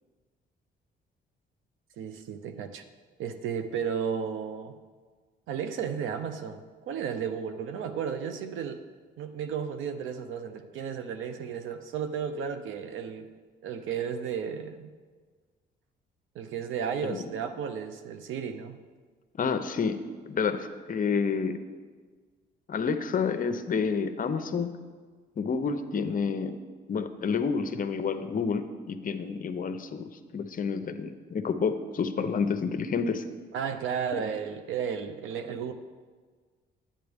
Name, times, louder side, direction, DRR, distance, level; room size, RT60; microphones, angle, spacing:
voice 1, 2.0-2.8 3.2-4.7 5.5-8.8 9.2-13.3 13.6-14.9 16.3-18.8 33.5-35.7, right 7 dB, 85° right, 8 dB, 0.7 m, -33 dB
voice 2, 19.4-20.0 20.3-21.6 22.7-24.7 25.4-26.6 26.9-33.2 34.1-34.2, left 5 dB, 45° left, 9 dB, 0.7 m, -29 dB
11.0 x 8.9 x 3.5 m, 1.5 s
cardioid pair, 90°, 20 cm